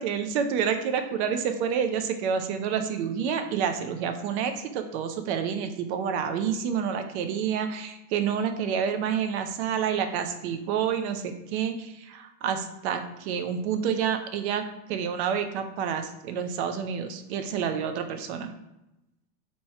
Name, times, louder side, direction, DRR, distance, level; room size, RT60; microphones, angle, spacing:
voice 1, 0.0-14.6 14.9-18.5, right 7 dB, 45° right, 7 dB, 0.5 m, -28 dB
3.0 x 2.8 x 4.4 m, 0.93 s
supercardioid pair, 135°, 47 cm